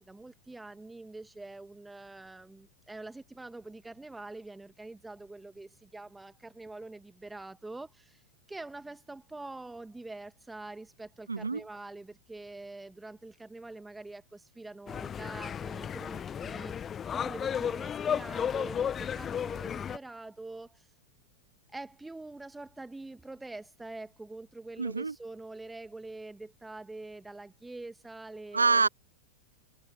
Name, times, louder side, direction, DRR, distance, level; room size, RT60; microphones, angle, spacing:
voice 1, 0.0-8.2 8.5-20.9 21.7-28.9, right 2 dB, 5° right, 1.8 m, -45 dB
voice 2, 11.3-11.6 24.8-25.1 28.5-28.9, right 4 dB, 80° right, 0.4 m, -26 dB
sound 1, 14.9-20.0, left 8 dB, 25° left, 1.2 m, -34 dB
figure-of-eight pair, 90°, 0 cm